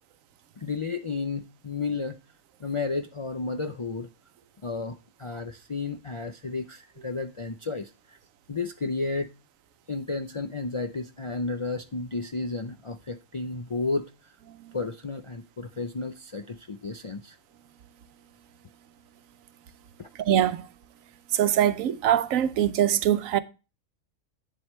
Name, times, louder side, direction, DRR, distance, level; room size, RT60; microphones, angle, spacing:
voice 1, 0.6-2.2 2.6-4.1 4.6-8.2 8.5-9.3 9.9-14.1 14.7-17.4 20.0-20.1, left 3 dB, 50° left, 0.3 m, -32 dB
voice 2, 20.2-20.6 21.3-23.4, right 11 dB, 85° right, 1.1 m, -23 dB
8.7 x 7.6 x 3.1 m
omnidirectional pair, 1.4 m